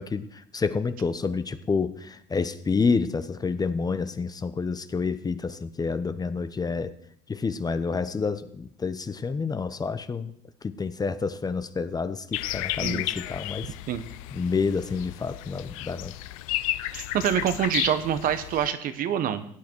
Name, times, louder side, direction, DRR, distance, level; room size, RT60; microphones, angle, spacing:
voice 1, 0.0-6.9 7.3-10.3 10.6-13.7 14.3-16.1, left 4 dB, 25° left, 12 dB, 0.8 m, -29 dB
sound 1, 12.3-18.7, left 15 dB, 85° left, 0.5 m, -33 dB
voice 2, 16.9-19.4, right 9 dB, 55° right, 11 dB, 1.1 m, -26 dB
16.5 x 8.4 x 4.6 m, 0.67 s
supercardioid pair, 85°, 17 cm